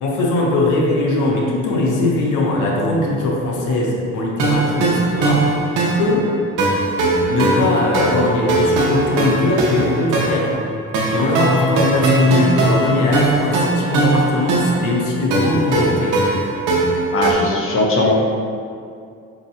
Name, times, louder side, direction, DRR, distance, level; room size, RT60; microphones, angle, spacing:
voice 1, 0.0-6.3 7.3-10.5 11.1-16.2, left 2 dB, 85° left, -2 dB, 0.7 m, -20 dB
sound 1, 4.4-17.3, right 2 dB, 85° right, 0.7 m, -19 dB
voice 2, 17.1-18.1, left 2 dB, 45° left, -2 dB, 0.7 m, -18 dB
4.8 x 2.9 x 2.7 m, 2.4 s
cardioid pair, 90°, 30 cm